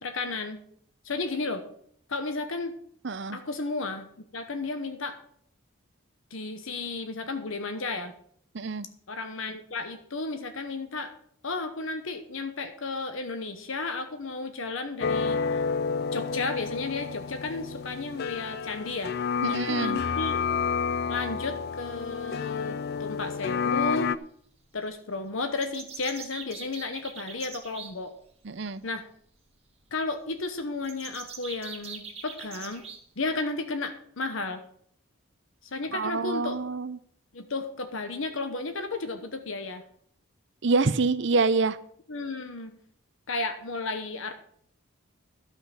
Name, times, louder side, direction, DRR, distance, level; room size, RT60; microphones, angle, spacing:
voice 1, 0.0-0.6 1.0-1.6 2.1-2.7 3.3-4.1 4.3-5.2 6.3-8.1 9.1-11.1 11.4-15.4 16.1-19.1 19.5-20.5 21.1-24.1 24.7-28.1 28.8-29.0 29.9-32.9 33.2-34.6 35.7-36.6 37.3-39.8 42.1-42.7 43.3-44.3, left 3 dB, 70° left, 8 dB, 1.0 m, -33 dB
voice 2, 3.0-3.4 8.5-8.9 19.4-20.0 28.4-28.8 35.9-37.0 40.6-41.8, right 4 dB, 55° right, 14 dB, 0.6 m, -26 dB
sound 1, 15.0-24.2, left 5 dB, 45° left, 0.4 m, -30 dB
sound 2, 25.6-27.9 30.8-33.0, right 6 dB, 30° right, 1.7 m, -42 dB
12.5 x 5.8 x 7.1 m, 0.64 s
head